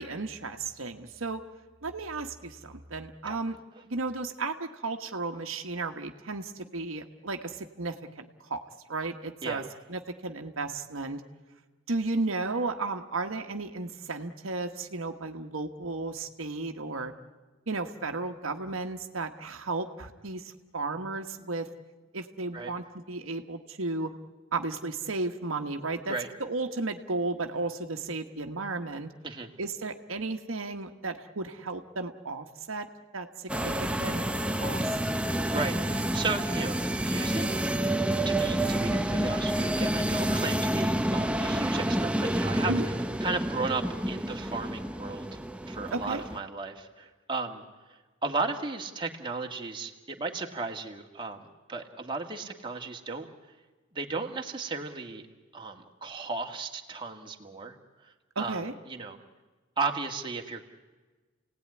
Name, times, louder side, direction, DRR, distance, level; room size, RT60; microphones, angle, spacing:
voice 1, 0.0-1.4 1.8-3.6 3.8-8.6 8.9-9.6 9.9-11.2 11.9-17.1 17.7-21.7 22.1-24.1 24.5-26.1 26.4-29.1 29.6-32.9 33.1-34.3 34.6-35.0 42.7-42.9 45.9-46.2 58.3-58.7, right 3 dB, 80° right, 5 dB, 1.4 m, -34 dB
sound 1, 33.5-46.4, right 1 dB, 5° right, 0.7 m, -29 dB
voice 2, 35.5-37.6 38.3-42.7 43.2-45.4 45.7-47.6 48.2-51.4 51.7-53.3 53.9-55.2 55.5-57.8 58.0-58.6 58.9-59.2 59.8-60.7, right 3 dB, 25° right, 2 dB, 1.9 m, -35 dB
29.5 x 18.0 x 9.8 m, 1.3 s
head